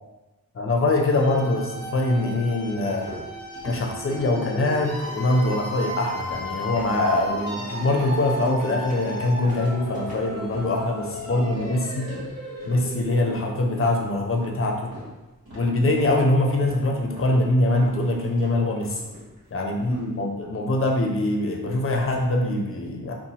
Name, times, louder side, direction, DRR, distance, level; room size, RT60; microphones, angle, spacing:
voice 1, 0.5-3.1 3.6-12.2 12.7-14.9 15.5-19.0 19.5-23.1, left 2 dB, 40° left, 1 dB, 0.5 m, -23 dB
sound 1, 1.0-13.8, equal, 50° right, 1.0 m, -35 dB
sound 2, 2.6-7.5 7.8-8.6 8.9-15.1 15.4-16.3 16.6-17.4 17.6-19.5 19.8-20.2, equal, 85° right, 1.1 m, -43 dB
sound 3, 7.4-10.6, right 3 dB, 20° right, 0.7 m, -42 dB
3.0 x 2.1 x 2.7 m, 1.1 s
cardioid pair, 60°, 36 cm